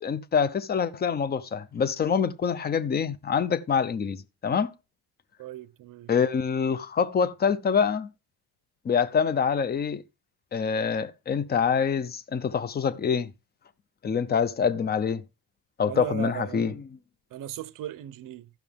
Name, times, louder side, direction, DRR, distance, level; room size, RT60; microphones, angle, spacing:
voice 1, 0.0-4.7 6.1-8.1 8.8-10.0 10.5-13.3 14.0-15.2 15.8-16.7, left 6 dB, 25° left, 0.7 m, -25 dB
voice 2, 5.4-6.1 15.9-16.7 17.3-18.5, right 13 dB, 60° right, 0.8 m, -37 dB
14.5 x 6.0 x 3.5 m
cardioid pair, 140°, 36 cm